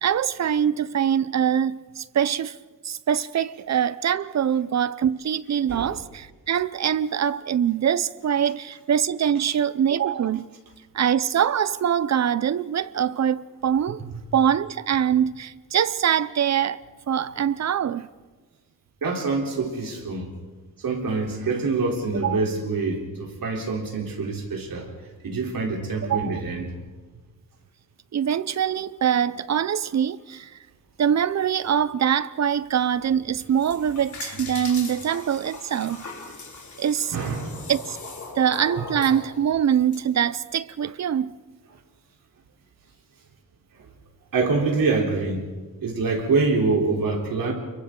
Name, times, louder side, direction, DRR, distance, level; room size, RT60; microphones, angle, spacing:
voice 1, 0.0-2.5 2.8-10.4 10.9-14.0 14.3-16.8 17.1-18.1 22.2-22.4 26.1-26.4 28.1-30.5 31.0-36.1 36.8-37.2 37.7-38.0 38.4-41.3, right 9 dB, 50° right, 0.6 m, -23 dB
voice 2, 19.0-20.3 20.8-24.9 25.2-26.7 37.1-37.7 38.8-38.9 44.3-45.4 45.8-47.5, right 3 dB, 80° right, 3.7 m, -25 dB
sound 1, 33.4-40.0, left 4 dB, 60° left, 4.0 m, -39 dB
29.5 x 23.0 x 3.8 m
wide cardioid pair, 135°, 34 cm